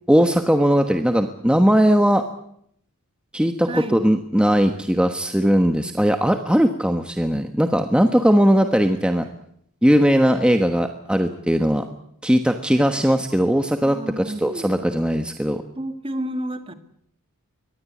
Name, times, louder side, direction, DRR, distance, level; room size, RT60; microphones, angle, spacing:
voice 1, 0.1-2.2 3.3-9.2 9.8-11.9 12.2-15.6, equal, 5° right, 6 dB, 1.2 m, -19 dB
voice 2, 3.7-4.0 13.8-14.7 15.8-16.7, right 1 dB, 25° right, 8 dB, 1.9 m, -30 dB
23.0 x 19.5 x 8.5 m, 0.70 s
head